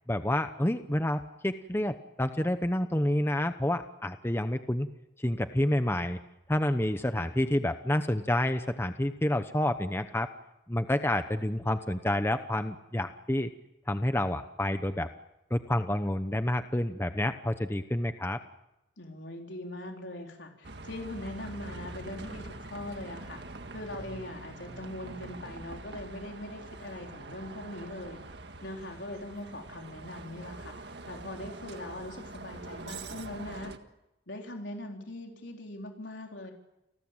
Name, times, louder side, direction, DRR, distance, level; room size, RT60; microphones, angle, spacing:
voice 1, 0.1-4.9 5.2-6.2 6.5-10.3 10.7-13.5 13.9-15.1 15.5-18.4, left 1 dB, 15° left, 9 dB, 0.9 m, -29 dB
voice 2, 19.0-23.4 23.7-28.2 28.6-33.7 34.3-36.5, left 1 dB, 85° left, 2 dB, 4.0 m, -41 dB
Bus, 20.6-33.8, right 2 dB, 70° right, 1.7 m, -44 dB
30.0 x 19.5 x 9.0 m, 0.91 s
head